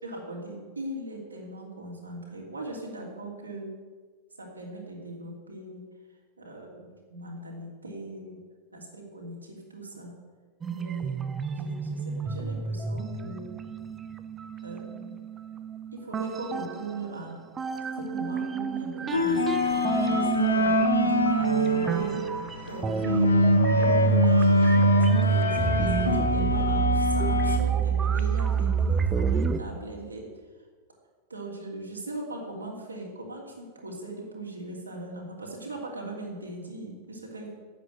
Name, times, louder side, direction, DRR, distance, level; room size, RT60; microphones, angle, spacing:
voice 1, 0.0-3.7 4.4-5.8 6.4-8.4 8.7-10.2 10.7-11.1 11.5-13.5 14.6-15.2 15.9-17.4 18.0-22.2 22.7-23.4 23.7-30.3 31.3-37.5, right 2 dB, 80° right, -1 dB, 3.1 m, -39 dB
sound 1, 10.6-17.2 17.6-29.6, right 7 dB, 20° right, 0.8 m, -28 dB
sound 2, 19.1-27.6, left 2 dB, 75° left, 1.0 m, -24 dB
10.5 x 8.6 x 9.1 m, 1.5 s
figure-of-eight pair, 90°, 0 cm